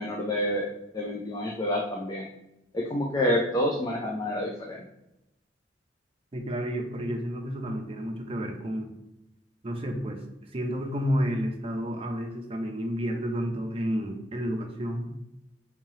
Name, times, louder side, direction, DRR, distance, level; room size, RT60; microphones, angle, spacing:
voice 1, 0.0-2.3 2.7-4.9, left 1 dB, 20° left, -1 dB, 0.4 m, -28 dB
voice 2, 6.3-9.0 9.6-10.2 10.5-15.1, equal, 30° right, 3 dB, 0.5 m, -30 dB
3.6 x 2.8 x 3.1 m, 0.87 s
head